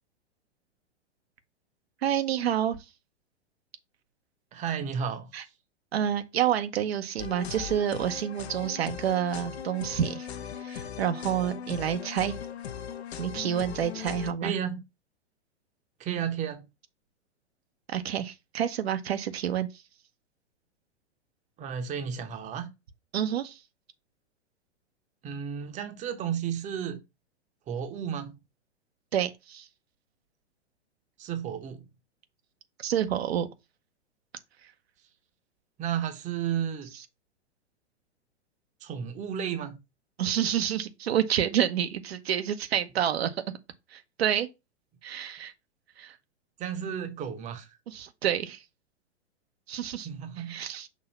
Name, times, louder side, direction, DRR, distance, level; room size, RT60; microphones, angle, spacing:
voice 1, 2.0-2.8 5.3-5.4 5.9-10.3 10.6-12.4 13.2-14.5 17.9-19.8 23.1-23.6 29.1-29.7 32.8-33.5 34.6-34.7 36.9-37.0 40.2-43.4 43.9-44.5 45.0-45.5 46.0-46.2 47.9-48.6 49.7-50.1 50.4-50.9, right 10 dB, 60° right, 0.9 m, -28 dB
voice 2, 4.5-5.5 14.4-14.8 16.0-16.7 21.6-22.7 25.2-27.0 27.7-28.4 31.2-31.8 35.8-36.9 38.8-39.8 46.6-47.7 50.0-50.6, right 8 dB, 20° right, 0.9 m, -33 dB
sound 1, 7.2-14.3, left 9 dB, 65° left, 0.8 m, -39 dB
6.2 x 2.9 x 5.5 m
figure-of-eight pair, 110°, 34 cm